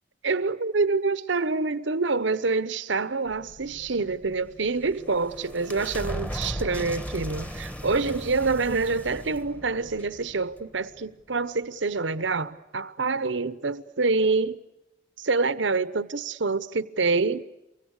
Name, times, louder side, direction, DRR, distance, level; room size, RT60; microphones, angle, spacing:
voice 1, 0.2-14.6 15.2-17.4, right 3 dB, 80° right, 1.0 m, -26 dB
sound 1, 3.2-10.0, equal, 75° left, 3.8 m, -51 dB
sound 2, 4.6-11.0, equal, 5° left, 1.4 m, -37 dB
28.5 x 24.0 x 8.3 m
head